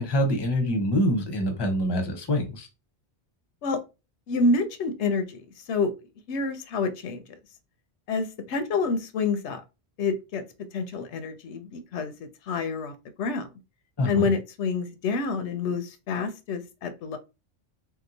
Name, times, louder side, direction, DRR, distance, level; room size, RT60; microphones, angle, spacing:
voice 1, 0.0-2.7 14.0-14.3, equal, 25° left, 4 dB, 0.7 m, -25 dB
voice 2, 4.3-5.4 5.7-5.9 6.3-7.2 8.1-9.6 10.0-10.4 10.7-12.1 12.5-12.9 13.2-13.5 14.1-17.2, left 3 dB, 85° left, 9 dB, 0.9 m, -27 dB
2.8 x 2.1 x 3.8 m, 0.27 s
omnidirectional pair, 1.1 m